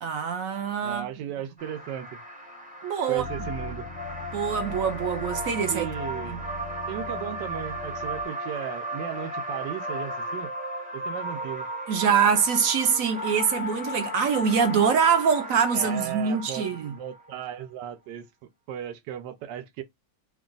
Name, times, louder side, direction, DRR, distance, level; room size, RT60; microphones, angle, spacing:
voice 1, 0.0-1.1 2.8-3.2 4.3-5.9 6.3-6.4 11.9-16.9, right 6 dB, 65° right, 0.9 m, -24 dB
voice 2, 0.8-2.2 3.1-3.9 5.7-6.5 6.9-10.5 10.9-11.7 15.7-18.3 18.7-19.8, right 10 dB, 90° right, 1.3 m, -36 dB
sound 1, 1.6-17.4, equal, 10° right, 0.3 m, -35 dB
sound 2, 3.2-8.2, equal, 45° left, 0.6 m, -40 dB
2.9 x 2.4 x 3.7 m
omnidirectional pair, 1.9 m